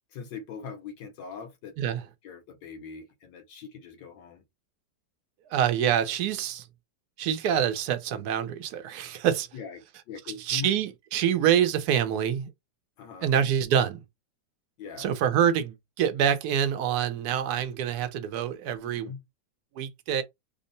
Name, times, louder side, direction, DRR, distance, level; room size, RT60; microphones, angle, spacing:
voice 1, 0.1-1.7 2.2-4.4 9.5-10.7 13.0-13.3 14.8-15.1 18.8-19.2, left 6 dB, 80° left, 1.5 m, -41 dB
voice 2, 5.5-6.7 7.2-9.5 10.4-12.5 13.2-14.0 15.0-19.1 19.8-20.2, right 9 dB, 70° right, 1.1 m, -26 dB
3.6 x 2.0 x 3.9 m
omnidirectional pair, 1.9 m